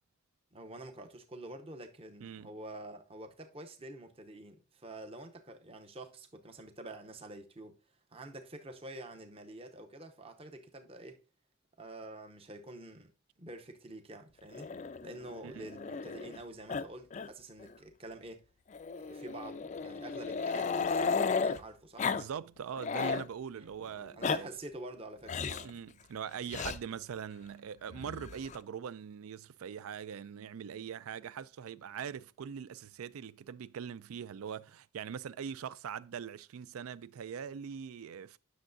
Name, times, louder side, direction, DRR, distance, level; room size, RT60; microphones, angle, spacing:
voice 1, 0.5-7.8 8.1-11.2 11.8-13.1 13.4-14.7 15.0-18.4 19.0-22.1 23.5-23.7 24.1-25.8, right 2 dB, 25° right, 0.7 m, -47 dB
voice 2, 2.2-2.5 15.4-15.7 22.1-24.5 25.6-38.4, right 7 dB, 80° right, 0.4 m, -42 dB
Growling, 14.5-16.4 16.7-16.9 17.1-17.3 17.6-17.7 18.7-21.6 22.0-22.2 22.6-23.3 24.0-24.4 25.3-25.7 26.5-26.8 27.9-28.6, left 5 dB, 35° left, 0.3 m, -34 dB
10.0 x 6.3 x 2.6 m
head